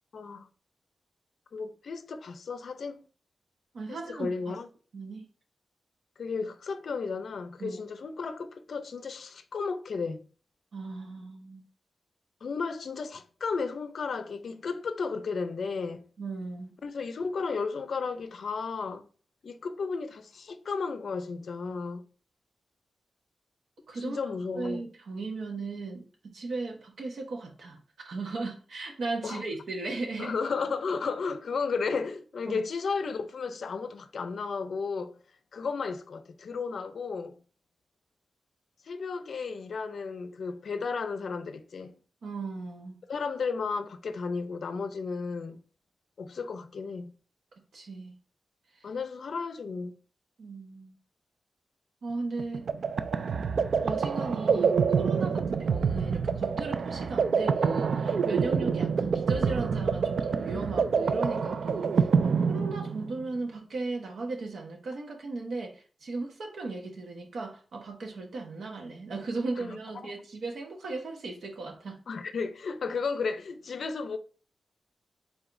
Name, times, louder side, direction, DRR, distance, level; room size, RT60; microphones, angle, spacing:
voice 1, 0.1-0.5 1.5-3.0 3.9-4.7 6.2-10.3 12.4-16.1 16.8-19.1 19.4-22.0 24.0-24.9 29.2-29.4 30.2-35.2 35.5-37.4 38.9-42.0 43.1-45.6 46.2-47.1 48.8-49.9 69.6-70.1 72.1-74.2, left 4 dB, 65° left, 0.4 m, -34 dB
voice 2, 3.7-4.6 4.9-5.2 7.6-7.8 10.7-11.6 16.2-16.7 23.9-24.2 24.5-27.8 28.0-30.4 32.4-32.6 42.2-43.0 47.7-48.2 50.4-51.0 52.0-52.7 53.8-72.0, right 3 dB, 85° right, 1.1 m, -36 dB
sound 1, 52.4-63.2, right 5 dB, 70° right, 0.3 m, -27 dB
4.8 x 4.0 x 2.5 m
wide cardioid pair, 165°, 0 cm